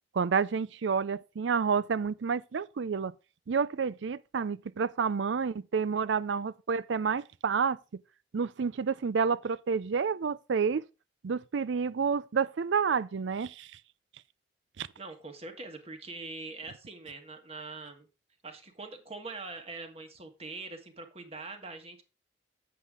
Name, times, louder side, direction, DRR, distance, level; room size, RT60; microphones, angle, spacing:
voice 1, 0.1-3.1 3.5-7.8 8.3-10.8 11.2-13.7 14.8-14.9, right 6 dB, 75° right, 0.5 m, -29 dB
voice 2, 15.0-18.1 18.4-22.0, right 3 dB, 30° right, 1.5 m, -43 dB
8.2 x 7.6 x 3.6 m
head